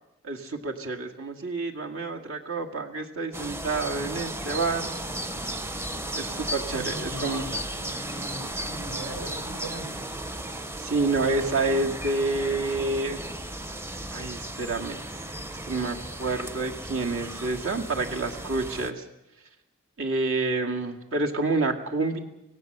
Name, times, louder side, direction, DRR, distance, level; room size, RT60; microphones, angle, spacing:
voice 1, 0.2-4.9 6.1-7.6 10.8-13.2 14.1-15.0 15.7-19.0 20.0-22.2, right 3 dB, 70° right, 2 dB, 2.1 m, -28 dB
sound 1, 3.3-18.9, right 1 dB, 10° right, 0.7 m, -35 dB
voice 2, 6.4-9.9, right 1 dB, 90° right, 3 dB, 6.6 m, -40 dB
26.0 x 17.0 x 6.7 m, 0.94 s
head